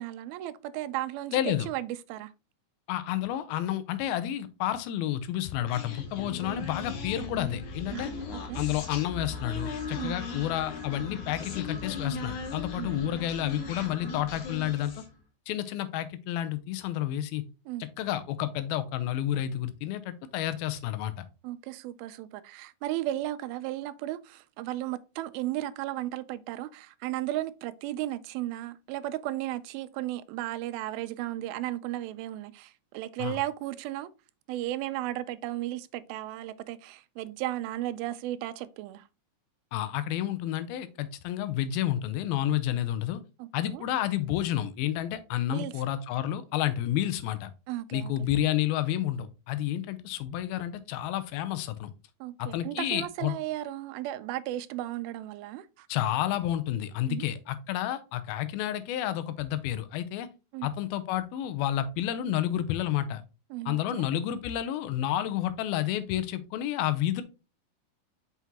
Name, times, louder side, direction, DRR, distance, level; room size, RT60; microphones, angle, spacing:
voice 1, 0.0-2.3 7.9-8.6 10.0-10.2 12.8-13.1 17.7-17.9 21.4-34.1 34.5-39.1 43.4-43.8 45.5-45.7 47.7-48.1 52.2-55.9 57.1-57.3 60.5-60.7 63.5-64.1, right 14 dB, 85° right, 2.4 m, -35 dB
voice 2, 1.3-1.7 2.9-8.1 8.6-14.9 15.5-17.4 18.0-21.1 33.2-33.4 39.7-43.2 43.5-47.5 47.9-51.9 52.4-53.3 55.9-60.3 60.6-63.2 63.7-67.2, left 12 dB, 90° left, 2.6 m, -30 dB
Human voice, 5.7-15.2, left 4 dB, 60° left, 2.4 m, -38 dB
6.0 x 5.8 x 2.8 m
omnidirectional pair, 4.3 m